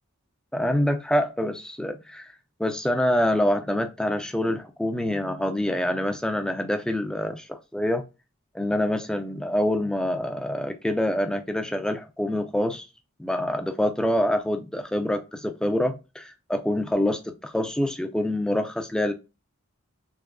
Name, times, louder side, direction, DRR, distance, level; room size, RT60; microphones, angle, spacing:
voice 1, 0.5-2.3 2.6-8.1 8.5-12.9 13.2-19.1, left 1 dB, 5° left, 6 dB, 0.4 m, -26 dB
3.6 x 3.0 x 2.3 m, 0.27 s
head